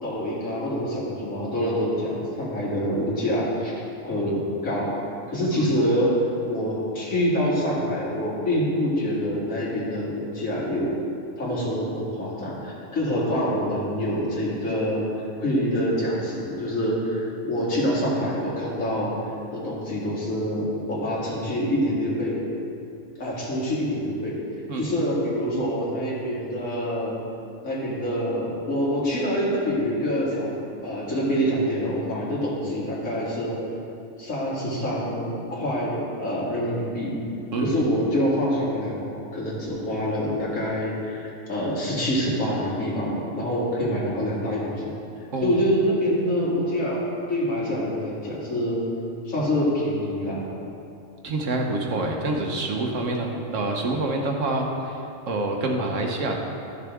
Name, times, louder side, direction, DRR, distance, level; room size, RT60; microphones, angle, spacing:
voice 1, 0.0-4.9 5.3-6.1 6.5-11.0 11.4-15.1 15.4-19.2 19.5-22.4 23.2-24.4 24.8-27.2 27.6-30.6 30.8-33.6 34.2-37.1 37.6-44.9 45.4-47.0 47.3-48.8 49.3-50.4 53.9-54.1, equal, 85° left, -6 dB, 2.4 m, -26 dB
voice 2, 51.2-56.4, right 2 dB, 70° right, 1 dB, 1.3 m, -27 dB
12.5 x 6.6 x 3.5 m, 2.6 s
omnidirectional pair, 1.4 m